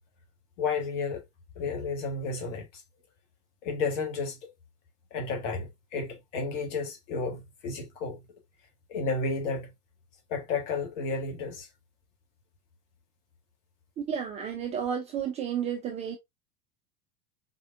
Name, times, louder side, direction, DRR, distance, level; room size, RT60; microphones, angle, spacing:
voice 1, 0.6-1.2 1.5-2.8 3.6-4.4 5.1-8.2 8.9-9.7 10.3-11.7, left 4 dB, 55° left, 1.7 m, -32 dB
voice 2, 14.0-16.2, right 8 dB, 15° right, 0.4 m, -32 dB
4.4 x 3.4 x 2.5 m
figure-of-eight pair, 80°, 45 cm